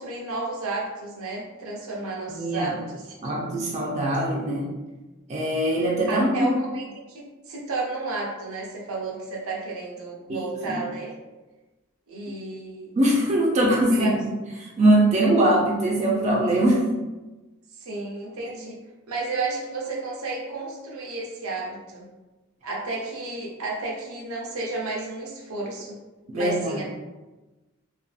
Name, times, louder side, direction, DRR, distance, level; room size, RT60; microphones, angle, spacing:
voice 1, 0.0-3.3 4.4-4.6 6.1-11.2 12.1-12.9 13.9-14.2 17.7-18.8 19.1-22.1 22.6-26.0 26.3-26.8, right 3 dB, 85° right, -2 dB, 0.6 m, -32 dB
voice 2, 2.3-2.7 3.2-4.7 5.3-6.5 10.3-10.8 13.0-14.3 14.8-16.8 26.3-26.8, right 1 dB, 30° right, -2 dB, 0.3 m, -22 dB
2.6 x 2.3 x 2.4 m, 1.1 s
head